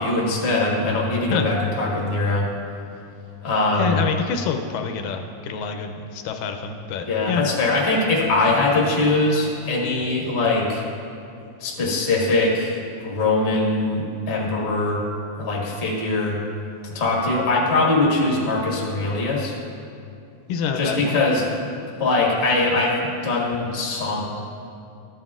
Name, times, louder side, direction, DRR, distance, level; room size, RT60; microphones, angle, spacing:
voice 1, 0.0-2.5 3.4-4.0 7.0-10.8 11.6-15.0 15.4-16.3 16.9-19.6 20.7-21.4 22.0-24.2, left 2 dB, 45° left, -4 dB, 0.8 m, -22 dB
voice 2, 3.8-7.4 20.5-21.2, left 6 dB, 80° left, 5 dB, 2.1 m, -27 dB
14.0 x 8.9 x 2.4 m, 2.6 s
omnidirectional pair, 4.0 m